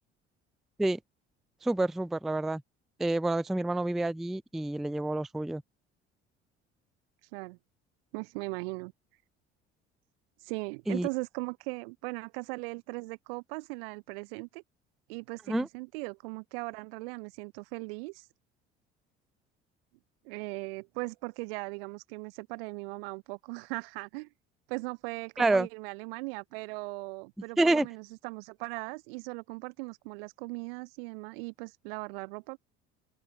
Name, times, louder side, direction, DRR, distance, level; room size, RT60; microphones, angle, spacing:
voice 1, 1.6-2.6 3.0-5.6 10.9-11.1 15.5-15.7 25.4-25.7 27.6-27.9, right 2 dB, ahead, 0.4 m, -28 dB
voice 2, 8.1-8.9 10.4-14.6 15.1-18.3 20.2-24.3 24.7-32.6, right 28 dB, 55° right, 0.7 m, -39 dB
open air
figure-of-eight pair, 60°, 34 cm